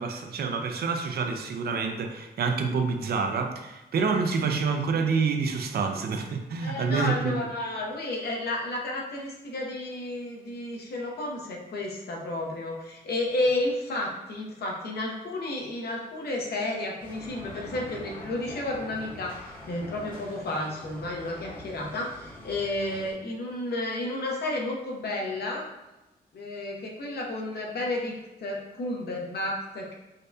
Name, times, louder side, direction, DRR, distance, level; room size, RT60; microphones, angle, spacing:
voice 1, 0.0-7.3, right 5 dB, 70° right, 5 dB, 0.5 m, -27 dB
voice 2, 6.6-19.4 19.7-25.6 26.3-29.9, left 2 dB, 75° left, -1 dB, 0.8 m, -32 dB
sound 1, 17.0-23.1, left 1 dB, 55° left, 1.2 m, -44 dB
5.1 x 2.2 x 2.7 m, 0.99 s
wide cardioid pair, 140°, 17 cm